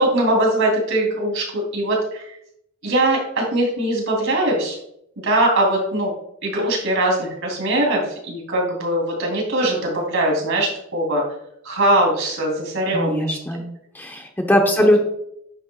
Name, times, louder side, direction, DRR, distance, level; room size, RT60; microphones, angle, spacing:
voice 1, 0.0-2.2 2.8-4.8 5.2-6.1 6.4-11.2 11.6-13.4, right 1 dB, 70° right, -1 dB, 3.2 m, -21 dB
voice 2, 12.9-13.7 13.9-15.0, equal, 10° left, 2 dB, 0.9 m, -19 dB
9.8 x 7.7 x 2.4 m, 0.75 s
head